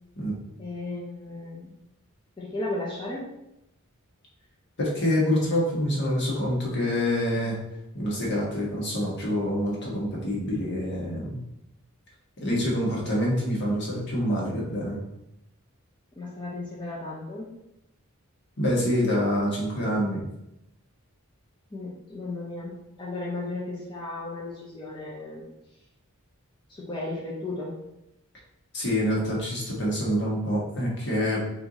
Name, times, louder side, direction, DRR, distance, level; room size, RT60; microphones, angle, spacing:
voice 1, 0.6-1.7 2.4-3.3 16.2-17.5 21.7-25.4 26.7-27.8, left 2 dB, 20° left, -6 dB, 0.7 m, -35 dB
voice 2, 4.8-7.6 7.9-11.4 12.4-15.0 18.6-20.2 28.7-31.4, equal, 55° left, -4 dB, 1.4 m, -26 dB
4.4 x 2.6 x 3.9 m, 0.85 s
head